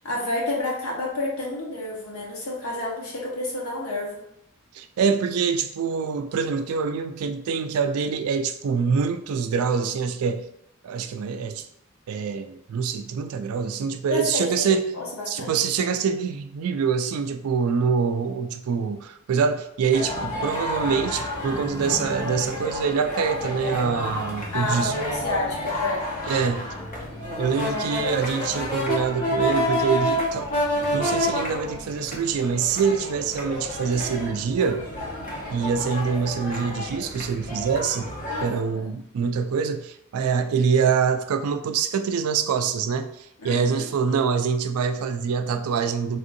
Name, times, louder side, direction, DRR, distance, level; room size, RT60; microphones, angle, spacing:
voice 1, 0.0-4.2 14.1-15.5 24.5-26.1 38.3-38.9 43.4-43.9, left 2 dB, 75° left, -3 dB, 1.1 m, -30 dB
voice 2, 4.7-10.4 10.8-11.7 12.1-14.9 15.3-24.9 26.3-26.7 27.4-30.5 30.9-34.8 35.5-38.1 38.4-43.1 43.4-46.2, right 6 dB, 75° right, 9 dB, 0.3 m, -25 dB
sound 1, 19.9-38.5, left 1 dB, 40° left, 0.8 m, -29 dB
3.5 x 2.6 x 2.6 m, 0.78 s
head